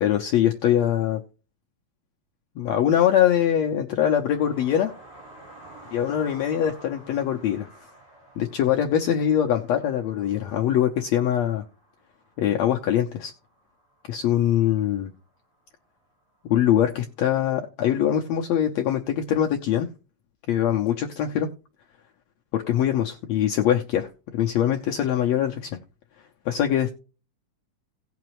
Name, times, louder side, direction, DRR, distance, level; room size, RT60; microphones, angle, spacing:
voice 1, 0.0-1.2 2.6-4.9 5.9-7.7 8.4-11.6 12.4-13.3 14.1-15.1 16.5-19.9 20.5-21.5 22.5-25.8 26.4-26.9, left 10 dB, 85° left, 1.5 m, -23 dB
sound 1, 4.3-15.4 16.4-16.5 16.8-16.9, right 2 dB, 35° right, 7.4 m, -50 dB
17.5 x 5.9 x 3.0 m
omnidirectional pair, 4.1 m